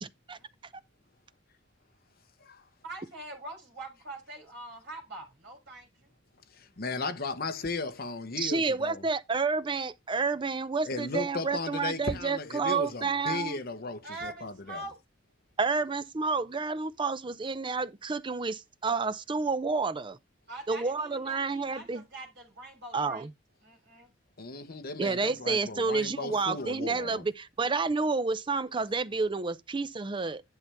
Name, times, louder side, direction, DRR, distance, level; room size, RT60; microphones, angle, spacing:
voice 1, 2.8-6.1 14.0-15.0 20.5-23.3 23.6-24.1 24.7-24.9, right 2 dB, 60° right, 4.0 m, -44 dB
voice 2, 6.5-9.0 10.8-14.8 24.4-27.2, left 3 dB, 50° left, 1.1 m, -36 dB
voice 3, 8.4-13.6 15.6-20.2 20.7-22.0 22.9-23.3 25.0-30.4, right 4 dB, 25° right, 0.5 m, -30 dB
10.5 x 5.6 x 3.5 m
head